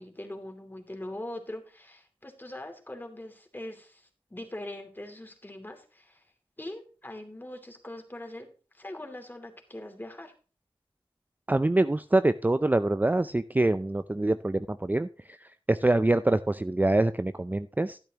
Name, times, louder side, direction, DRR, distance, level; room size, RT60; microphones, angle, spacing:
voice 1, 0.0-6.2 6.6-8.5 8.7-10.3, left 1 dB, 20° left, 4 dB, 2.7 m, -42 dB
voice 2, 11.5-18.0, right 2 dB, 20° right, 11 dB, 0.5 m, -25 dB
12.0 x 10.0 x 2.9 m, 0.37 s
wide cardioid pair, 60°, 9 cm